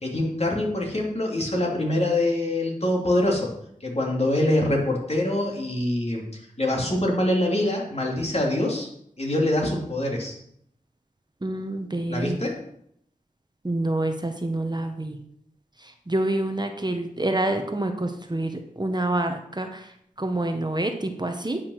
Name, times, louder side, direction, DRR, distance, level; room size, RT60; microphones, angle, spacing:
voice 1, 0.0-3.5 3.8-8.9 9.2-10.4 12.1-12.5, left 1 dB, 45° left, -1 dB, 3.0 m, -24 dB
voice 2, 11.4-12.4 13.6-15.2 16.1-19.9 20.2-21.6, right 1 dB, 30° right, 5 dB, 1.2 m, -27 dB
9.7 x 5.8 x 6.5 m, 0.72 s
wide cardioid pair, 50°, 15 cm